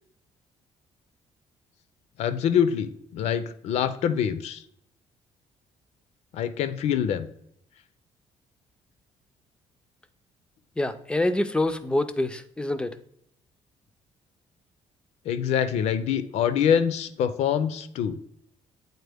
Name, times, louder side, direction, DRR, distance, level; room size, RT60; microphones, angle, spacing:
voice 1, 2.2-4.6 6.3-7.3 15.3-18.2, left 8 dB, 70° left, 12 dB, 0.5 m, -25 dB
voice 2, 10.8-12.9, left 1 dB, 10° left, 11 dB, 0.3 m, -26 dB
8.0 x 4.1 x 3.4 m, 0.71 s
cardioid pair, 155°, 12 cm